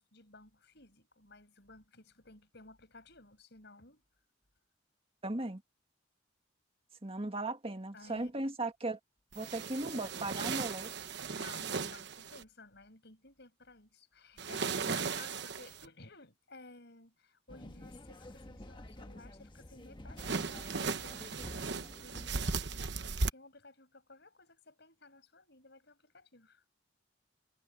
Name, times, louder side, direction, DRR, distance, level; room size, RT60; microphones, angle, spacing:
voice 1, 0.0-4.0 7.9-8.5 11.3-26.6, left 2 dB, 60° left, 7.1 m, -56 dB
voice 2, 5.2-5.6 7.0-9.0 9.4-10.9, right 2 dB, 30° right, 1.8 m, -37 dB
sound 1, 9.3-12.4 14.4-15.9 20.2-23.3, right 4 dB, 60° right, 1.1 m, -37 dB
sound 2, 17.5-22.5, left 1 dB, 25° left, 1.3 m, -50 dB
head